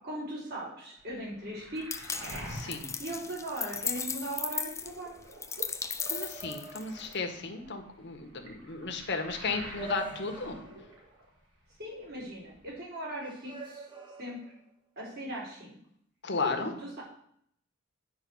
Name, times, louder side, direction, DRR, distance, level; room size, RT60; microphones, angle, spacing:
voice 1, 0.0-2.2 3.0-5.1 11.8-13.8 14.2-14.4 15.0-15.8 16.4-17.0, right 1 dB, 55° right, -5 dB, 4.4 m, -39 dB
sound 1, 0.5-0.9 5.1-5.2 6.0-7.3 8.2-8.3 9.7-11.2 13.2-14.7, right 4 dB, 25° right, 1.3 m, -46 dB
Waves surf, 1.0-4.2 4.5-11.4 11.7-12.6, right 1 dB, 90° right, 3.0 m, -47 dB
sound 2, 1.9-7.1, left 6 dB, 15° left, 0.6 m, -36 dB
voice 2, 2.5-2.9 6.1-10.6 16.2-16.7, left 4 dB, 60° left, 4 dB, 1.5 m, -34 dB
9.9 x 4.7 x 7.9 m, 0.67 s
head